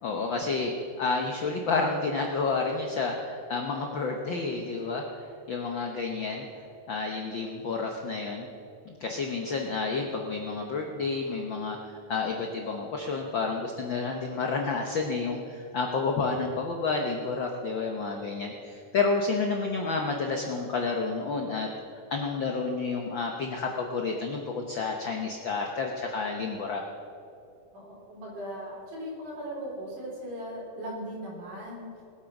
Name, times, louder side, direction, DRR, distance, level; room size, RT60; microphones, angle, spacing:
voice 1, 0.0-8.5 8.8-21.7 22.1-26.8, left 4 dB, 90° left, 2 dB, 1.0 m, -30 dB
voice 2, 27.7-31.9, equal, 85° right, -4 dB, 5.4 m, -38 dB
19.5 x 8.7 x 6.0 m, 2.6 s
omnidirectional pair, 3.6 m